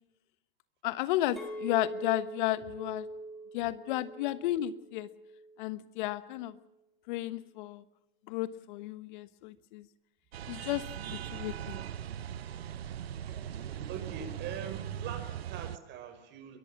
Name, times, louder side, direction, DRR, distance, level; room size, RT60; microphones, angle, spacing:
voice 1, 0.8-3.1 3.5-5.1 5.6-6.6 7.1-7.8 8.3-9.9 10.5-11.8, left 15 dB, 55° left, 15 dB, 1.3 m, -33 dB
Chink clink, 1.4-5.7 6.2-6.5, equal, ahead, 5.9 m, -43 dB
sound 1, 10.3-15.8, right 10 dB, 85° right, 1.0 m, -40 dB
voice 2, 13.3-16.6, right 7 dB, 35° right, 9 dB, 6.1 m, -43 dB
22.5 x 21.5 x 7.3 m, 0.88 s
hypercardioid pair, 125°, 30 cm